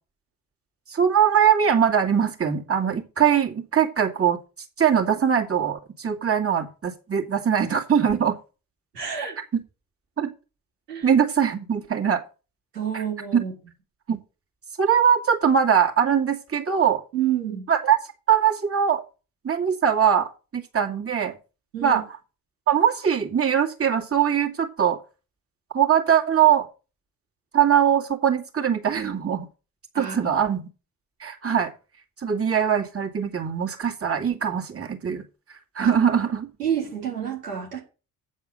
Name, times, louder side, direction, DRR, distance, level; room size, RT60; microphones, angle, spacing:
voice 1, 0.9-4.4 4.8-8.4 9.5-9.6 10.2-10.3 11.0-12.2 12.9-13.0 13.3-13.4 14.1-14.2 14.8-17.0 17.7-18.0 18.3-19.0 19.4-21.3 21.8-22.0 22.7-25.0 25.7-26.7 27.5-29.5 30.0-30.7 31.2-31.7 32.2-35.2 35.5-36.5, right 8 dB, 30° right, 2.5 m, -21 dB
voice 2, 8.9-9.4 10.9-11.1 12.7-13.5 17.1-17.7 21.7-22.0 29.9-30.3 35.8-35.9 36.6-37.8, right 9 dB, 90° right, 3.0 m, -29 dB
8.4 x 7.4 x 6.4 m
hypercardioid pair, 50°, 46 cm